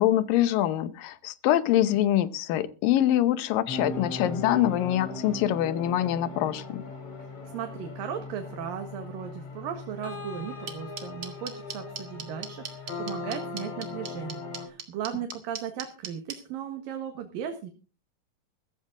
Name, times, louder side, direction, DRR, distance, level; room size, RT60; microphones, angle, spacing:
voice 1, 0.0-6.8, left 12 dB, 85° left, 15 dB, 2.6 m, -24 dB
sound 1, 3.7-14.7, left 2 dB, 45° left, 4.8 m, -39 dB
voice 2, 7.2-17.7, right 9 dB, 85° right, 5 dB, 3.2 m, -37 dB
sound 2, 10.7-16.3, right 7 dB, 45° right, 2.4 m, -36 dB
14.5 x 14.5 x 3.7 m, 0.34 s
omnidirectional pair, 3.9 m